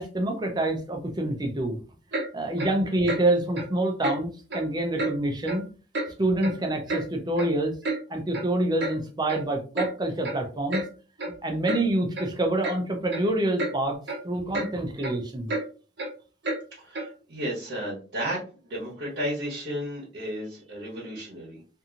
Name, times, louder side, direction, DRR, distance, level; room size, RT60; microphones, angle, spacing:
voice 1, 0.0-1.8 2.3-5.6 6.2-7.8 8.1-10.8 11.4-14.0 14.2-15.5, right 1 dB, 25° right, 3 dB, 0.5 m, -27 dB
Clock, 2.1-2.3 2.6-2.7 3.1-3.2 3.5-3.7 4.0-4.2 4.5-4.6 5.0-5.1 5.5-5.6 5.9-6.1 6.4-7.0 7.4-7.5 7.8-8.0 8.3-8.5 8.8-8.9 9.3-9.4 9.7-9.9 10.2-10.4 10.7-10.9 11.2-11.3 11.6-11.8 12.1-12.3 12.6-12.8 13.1-13.3 13.6-13.7 14.1-14.2 14.5-14.7 15.0-15.1 15.5-15.6 16.0-16.1 16.4-16.6 16.9-17.1, right 2 dB, 70° right, 0.8 m, -30 dB
voice 2, 16.8-21.6, equal, 90° right, -6 dB, 1.1 m, -33 dB
2.8 x 2.6 x 2.4 m, 0.37 s
head